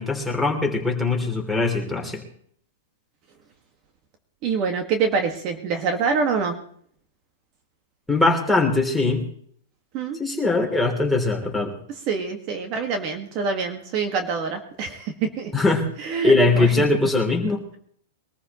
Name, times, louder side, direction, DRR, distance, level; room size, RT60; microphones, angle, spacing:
voice 1, 0.0-2.3 8.1-9.2 10.2-11.8 15.5-15.9 16.2-17.6, left 3 dB, ahead, -1 dB, 3.1 m, -21 dB
voice 2, 4.4-6.6 9.9-10.2 12.1-15.5 16.0-16.9, right 5 dB, 40° right, 5 dB, 1.7 m, -25 dB
22.5 x 14.0 x 3.1 m, 0.63 s
hypercardioid pair, 135°, 0 cm